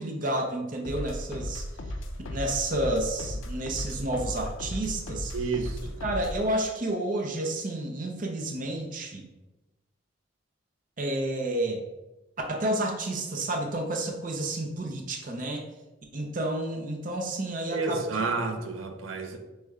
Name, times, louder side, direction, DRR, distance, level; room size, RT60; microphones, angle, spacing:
voice 1, 0.0-1.6 2.3-5.3 6.0-9.2 11.0-11.8 12.5-15.6 16.1-18.3, right 1 dB, 40° right, 2 dB, 0.5 m, -30 dB
sound 1, 0.8-6.5, left 1 dB, 80° left, 0.5 m, -36 dB
voice 2, 5.3-5.9 17.7-19.4, right 4 dB, 90° right, 4 dB, 0.6 m, -30 dB
6.2 x 2.2 x 3.5 m, 1.0 s
head